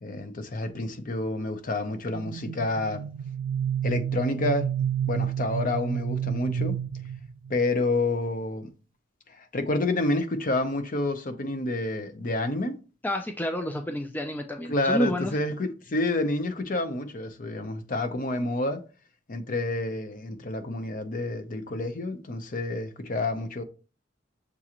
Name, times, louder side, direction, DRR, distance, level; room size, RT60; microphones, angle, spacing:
voice 1, 0.0-3.0 3.8-4.7 5.1-6.8 7.5-8.7 9.5-12.8 14.7-18.8 19.3-23.6, left 2 dB, 45° left, 0.6 m, -28 dB
sound 1, 2.1-7.6, right 9 dB, 75° right, 0.3 m, -30 dB
voice 2, 13.0-15.3, equal, 10° left, 0.3 m, -29 dB
6.8 x 2.5 x 2.9 m
head